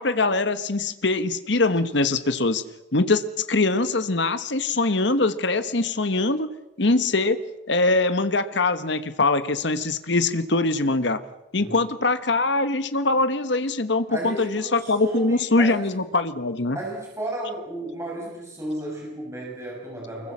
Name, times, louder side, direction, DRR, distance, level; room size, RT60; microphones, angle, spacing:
voice 1, 0.0-2.6 2.9-6.5 6.8-7.4 7.7-11.2 11.5-16.8, left 3 dB, 65° left, 11 dB, 1.3 m, -23 dB
voice 2, 11.6-11.9 14.1-15.8 16.7-20.3, right 1 dB, 15° right, -2 dB, 7.4 m, -33 dB
25.0 x 22.0 x 7.4 m, 0.94 s
head